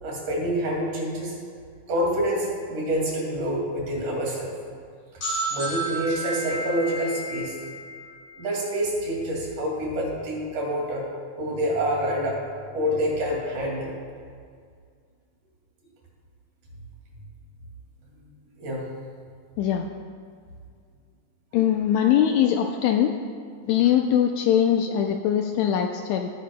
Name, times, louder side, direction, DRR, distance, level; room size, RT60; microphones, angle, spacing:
voice 1, 0.0-1.4 1.9-4.5 5.5-7.6 8.4-11.1 11.4-12.4 12.7-14.0 18.6-18.9, equal, 80° right, -2 dB, 3.9 m, -27 dB
sound 1, 5.2-8.9, right 2 dB, 50° left, 2.3 m, -32 dB
voice 2, 21.5-23.1 23.7-26.3, left 9 dB, 80° left, 4 dB, 1.6 m, -21 dB
19.0 x 10.0 x 2.2 m, 2.1 s
omnidirectional pair, 3.6 m